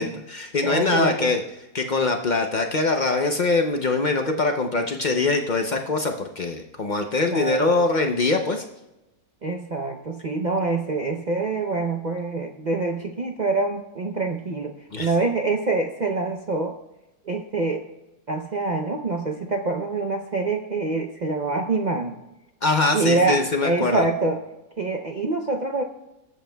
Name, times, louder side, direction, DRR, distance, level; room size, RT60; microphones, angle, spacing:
voice 1, 0.0-1.4 1.7-8.6 14.9-15.1 22.6-24.0, left 3 dB, 55° left, 4 dB, 0.5 m, -23 dB
voice 2, 0.6-1.3 7.3-7.7 9.4-14.7 15.0-16.8 17.3-17.8 18.3-22.2 22.9-24.4 24.8-25.8, right 3 dB, 55° right, 3 dB, 0.5 m, -25 dB
20.0 x 8.2 x 2.2 m, 0.96 s
omnidirectional pair, 1.6 m